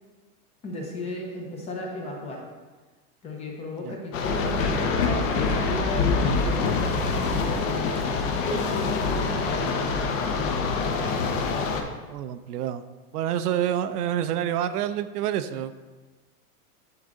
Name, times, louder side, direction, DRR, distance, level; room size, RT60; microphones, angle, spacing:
voice 1, 0.6-2.4 3.2-9.9, left 1 dB, 15° left, 0 dB, 0.6 m, -35 dB
sound 1, 4.1-11.8, left 4 dB, 55° left, 1.1 m, -25 dB
voice 2, 12.1-12.8 13.1-15.8, right 10 dB, 75° right, 11 dB, 0.6 m, -28 dB
11.0 x 3.8 x 3.8 m, 1.3 s
supercardioid pair, 160°, 46 cm